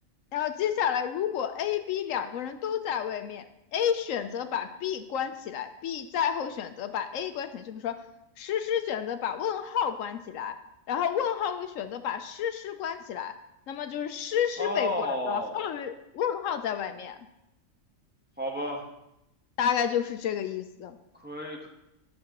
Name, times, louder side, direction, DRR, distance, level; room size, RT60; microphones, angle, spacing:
voice 1, 0.3-3.5 3.7-8.0 8.4-10.6 10.9-13.3 13.7-17.2 19.6-21.0, left 9 dB, 75° left, 9 dB, 0.9 m, -30 dB
voice 2, 14.6-15.7 18.4-18.9 21.1-21.7, left 1 dB, 10° right, -1 dB, 1.0 m, -32 dB
11.0 x 7.5 x 2.9 m, 0.86 s
omnidirectional pair, 1.4 m